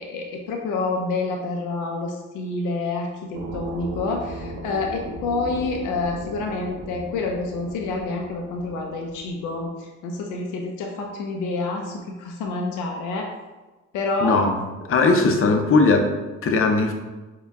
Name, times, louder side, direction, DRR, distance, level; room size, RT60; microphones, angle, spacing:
voice 1, 0.0-13.3 13.9-14.4, left 3 dB, 90° left, 1 dB, 0.5 m, -28 dB
sound 1, 3.3-9.7, right 2 dB, 65° right, 0.8 m, -37 dB
voice 2, 14.2-14.5 14.9-16.1 16.4-16.9, left 3 dB, 45° left, 4 dB, 0.7 m, -18 dB
4.6 x 2.3 x 3.4 m, 1.2 s
cardioid pair, 90°, 30 cm